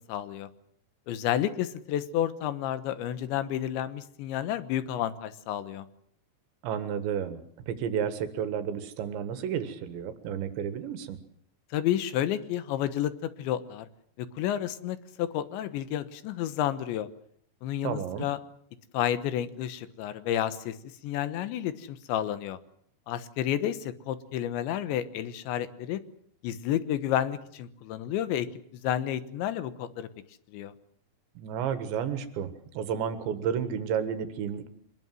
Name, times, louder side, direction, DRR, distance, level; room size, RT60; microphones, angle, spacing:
voice 1, 0.1-0.5 1.1-5.9 11.7-13.9 14.2-17.1 17.6-18.4 18.9-20.8 21.0-22.6 23.1-26.0 26.4-28.5 28.8-30.1 30.5-30.7, left 11 dB, 85° left, 13 dB, 3.5 m, -30 dB
voice 2, 6.6-11.2 17.8-18.3 31.4-34.7, right 8 dB, 85° right, 10 dB, 3.9 m, -32 dB
24.5 x 21.0 x 7.7 m, 0.63 s
omnidirectional pair, 5.1 m